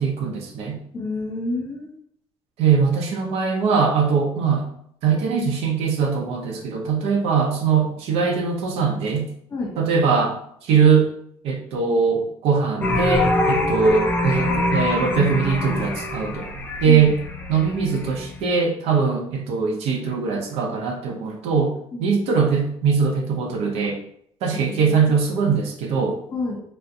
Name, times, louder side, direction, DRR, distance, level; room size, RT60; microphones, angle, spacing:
voice 1, 0.0-0.8 2.6-4.7 5.0-9.3 9.8-10.4 10.6-11.1 11.4-16.5 16.8-17.2 17.5-21.7 22.0-24.0 24.4-26.2, right 5 dB, 75° right, 2 dB, 0.7 m, -21 dB
voice 2, 0.9-1.9 9.5-9.7 16.8-17.1 21.9-22.1 24.6-25.1 26.3-26.6, left 2 dB, 35° left, -2 dB, 1.0 m, -29 dB
sound 1, 12.8-18.3, left 2 dB, 15° left, 0.4 m, -24 dB
3.5 x 2.5 x 2.7 m, 0.68 s
cardioid pair, 160°, 11 cm